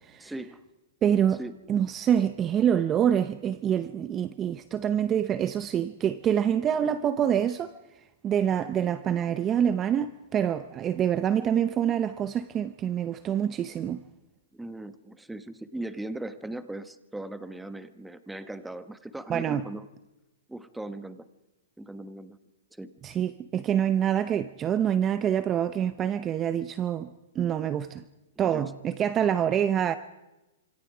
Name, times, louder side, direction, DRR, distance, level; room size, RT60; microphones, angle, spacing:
voice 1, 0.2-0.6 1.4-1.6 14.5-19.9 20.5-21.3 21.8-22.4 22.7-23.2 23.6-23.7 28.4-28.7, right 1 dB, 5° right, 1.2 m, -39 dB
voice 2, 1.0-1.4 1.7-7.7 8.2-14.0 19.3-19.6 23.0-27.1 27.3-28.0 28.4-30.0, right 9 dB, 20° right, 0.8 m, -26 dB
27.5 x 26.5 x 5.0 m
hypercardioid pair, 140°, 0 cm